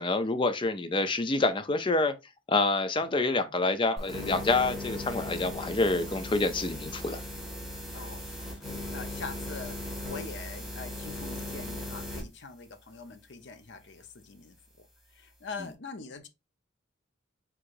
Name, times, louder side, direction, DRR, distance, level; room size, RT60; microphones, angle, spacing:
voice 1, 0.0-2.1 2.5-7.2, left 3 dB, 25° left, 0.4 m, -27 dB
sound 1, 4.0-12.2, left 1 dB, ahead, 1.7 m, -38 dB
voice 2, 7.9-14.9 15.1-16.3, left 4 dB, 60° left, 0.7 m, -44 dB
4.7 x 3.8 x 2.5 m
head